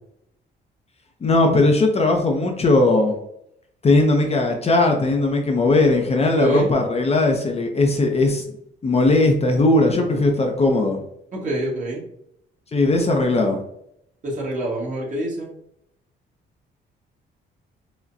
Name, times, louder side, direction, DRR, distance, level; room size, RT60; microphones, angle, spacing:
voice 1, 1.2-3.2 3.8-8.4 8.8-11.0 12.7-13.6, left 2 dB, 30° left, 2 dB, 0.6 m, -18 dB
voice 2, 6.3-6.7 11.3-12.0 14.2-15.5, right 1 dB, 40° right, -4 dB, 1.5 m, -25 dB
4.9 x 2.1 x 2.6 m, 0.75 s
cardioid pair, 90°, 20 cm